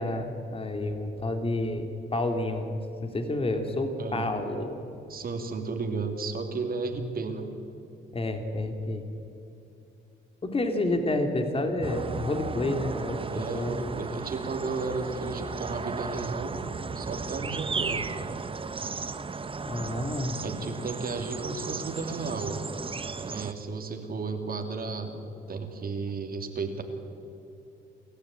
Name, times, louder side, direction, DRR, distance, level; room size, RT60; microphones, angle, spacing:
voice 1, 0.0-1.9 2.1-4.8 8.1-9.0 10.4-13.9 19.6-20.4, left 2 dB, 30° left, 5 dB, 2.7 m, -29 dB
voice 2, 4.0-4.4 5.1-7.5 13.3-16.6 16.9-18.1 20.4-22.6 23.2-26.8, right 4 dB, 50° right, 5 dB, 2.9 m, -33 dB
sound 1, 11.8-23.5, right 4 dB, 25° right, 1.0 m, -35 dB
28.5 x 14.0 x 9.1 m, 2.8 s
cardioid pair, 90°, 20 cm